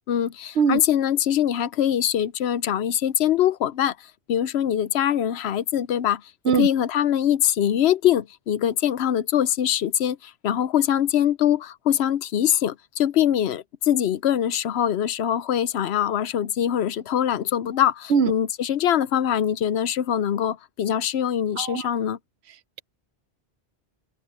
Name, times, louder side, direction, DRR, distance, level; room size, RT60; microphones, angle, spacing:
voice 1, 0.1-4.0 4.3-6.2 6.6-22.2, left 10 dB, 80° left, 0.9 m, -23 dB
voice 2, 21.6-21.9, right 6 dB, 80° right, 1.0 m, -21 dB
omnidirectional pair, 1.1 m